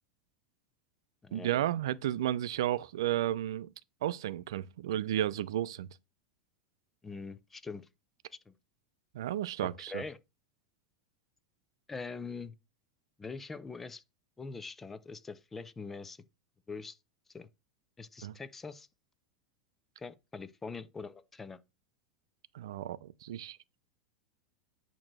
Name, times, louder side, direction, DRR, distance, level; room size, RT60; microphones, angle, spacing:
voice 1, 1.3-3.7 4.0-5.9 9.1-10.0 18.2-18.3 22.5-23.6, right 12 dB, 80° right, 0.5 m, -33 dB
voice 2, 7.0-7.9 8.5-8.6 9.6-10.2 11.9-12.5 13.2-14.0 14.4-16.2 16.7-17.0 17.3-17.5 18.0-18.9 20.0-21.6, left 4 dB, 10° left, 0.3 m, -43 dB
8.7 x 3.0 x 6.0 m
supercardioid pair, 180°, 2 cm